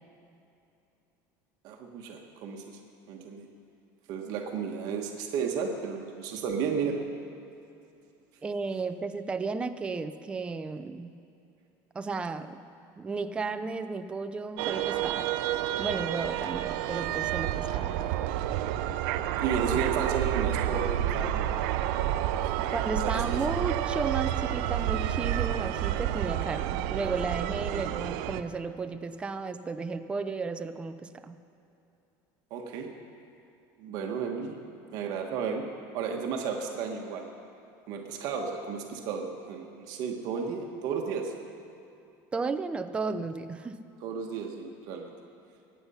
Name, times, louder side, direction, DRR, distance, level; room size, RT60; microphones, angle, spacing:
voice 1, 1.6-2.8 3.1-3.5 4.1-7.0 19.4-21.5 22.6-22.7 23.1-23.4 32.5-32.9 33.8-34.6 34.9-35.6 35.9-37.3 37.9-41.3 44.0-45.1, right 6 dB, 50° right, 2 dB, 1.4 m, -33 dB
voice 2, 8.4-11.2 11.9-12.6 13.0-15.3 15.8-18.0 22.7-31.4 42.3-43.8, right 4 dB, 10° right, 9 dB, 0.5 m, -34 dB
sound 1, 14.6-28.4, right 12 dB, 65° right, 0.7 m, -29 dB
23.0 x 9.7 x 5.7 m, 2.8 s
cardioid pair, 170°, 9 cm